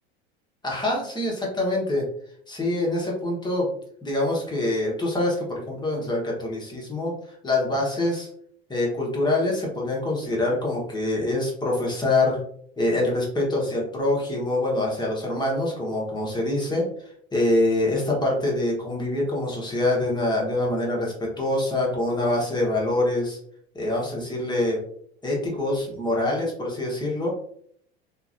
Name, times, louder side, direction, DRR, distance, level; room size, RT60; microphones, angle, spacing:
voice 1, 0.6-2.0 2.5-3.7 4.0-7.1 7.4-8.3 8.7-12.4 12.8-16.9 17.3-23.4 23.7-24.8 25.2-27.3, left 2 dB, 15° left, -3 dB, 1.1 m, -25 dB
2.9 x 2.6 x 2.5 m, 0.64 s
hypercardioid pair, 95°, 31 cm